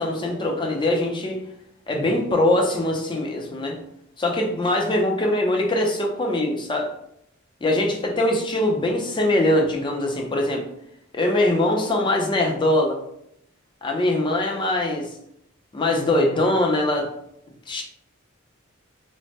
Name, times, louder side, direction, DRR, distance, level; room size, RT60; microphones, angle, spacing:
voice 1, 0.0-1.4 1.9-3.8 4.2-6.9 7.6-10.6 11.1-13.0 13.8-15.1 15.7-17.1 17.7-17.8, left 1 dB, 25° left, 1 dB, 0.4 m, -22 dB
3.1 x 2.0 x 2.7 m, 0.76 s
head